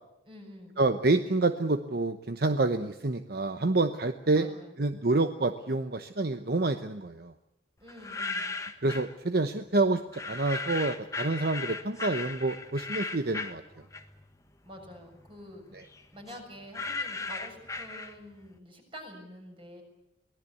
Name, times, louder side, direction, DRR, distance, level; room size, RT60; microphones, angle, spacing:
voice 1, 0.2-0.8 4.3-4.8 7.8-8.6 14.6-15.8 16.1-19.8, equal, 30° right, 3 dB, 6.5 m, -47 dB
voice 2, 0.8-4.5 4.8-7.3 8.8-13.6 15.7-15.8, right 2 dB, 55° right, 9 dB, 1.0 m, -28 dB
sound 1, 7.9-9.1 10.1-14.4 14.7-18.5, left 3 dB, 15° left, 1.4 m, -37 dB
24.0 x 18.5 x 8.5 m, 0.89 s
head